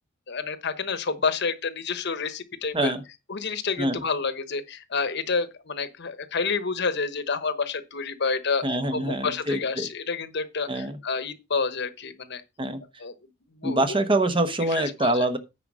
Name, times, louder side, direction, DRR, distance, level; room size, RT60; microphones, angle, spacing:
voice 1, 0.3-2.9 3.3-8.6 8.9-12.4 13.0-13.1 13.5-14.0 14.7-15.2, left 4 dB, 60° left, 1.1 m, -29 dB
voice 2, 8.6-9.9 10.7-11.0 12.6-12.8 13.6-15.4, right 1 dB, 25° right, 1.1 m, -25 dB
9.7 x 4.9 x 6.2 m
head